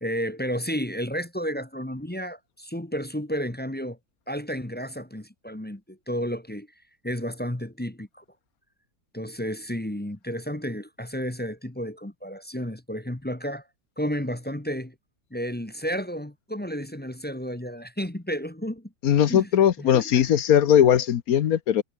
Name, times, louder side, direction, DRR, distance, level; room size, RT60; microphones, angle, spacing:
voice 1, 0.0-4.0 4.3-6.7 7.0-8.2 9.1-13.6 14.0-14.9 15.3-18.9 19.2-19.5 19.8-20.3, equal, 10° left, 0.9 m, -32 dB
voice 2, 19.0-21.8, left 9 dB, 65° left, 1.3 m, -19 dB
omnidirectional pair, 1.7 m